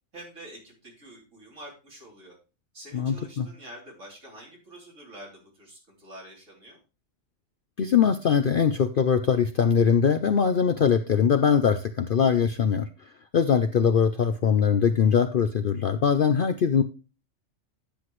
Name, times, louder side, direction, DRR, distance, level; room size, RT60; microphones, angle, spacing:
voice 1, 0.1-2.4 2.7-6.8, right 1 dB, 60° right, -1 dB, 3.8 m, -46 dB
voice 2, 2.9-3.5 7.8-12.9 13.3-16.8, left 7 dB, 55° left, 9 dB, 0.6 m, -22 dB
10.5 x 7.7 x 3.1 m, 0.32 s
omnidirectional pair, 1.4 m